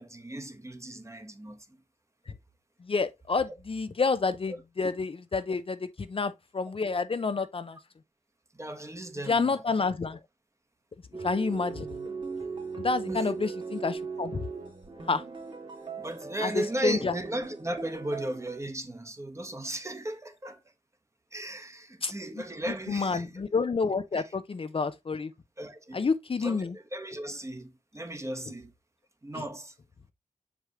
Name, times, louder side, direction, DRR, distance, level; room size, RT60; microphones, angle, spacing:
voice 1, 0.0-1.7 8.5-9.6 13.1-13.3 16.0-20.6 21.3-23.3 24.1-24.2 25.6-26.0 26.4-28.7 29.2-29.7, right 1 dB, 20° right, 1.2 m, -36 dB
voice 2, 2.8-7.8 9.3-10.2 11.2-11.9 12.8-14.5 15.1-15.2 16.4-17.1 22.0-22.1 22.9-25.3 25.9-26.8 29.3-29.4, left 4 dB, 45° left, 0.6 m, -29 dB
sound 1, 11.1-18.6, right 4 dB, 40° right, 2.2 m, -39 dB
6.2 x 5.0 x 3.0 m
cardioid pair, 60°, 13 cm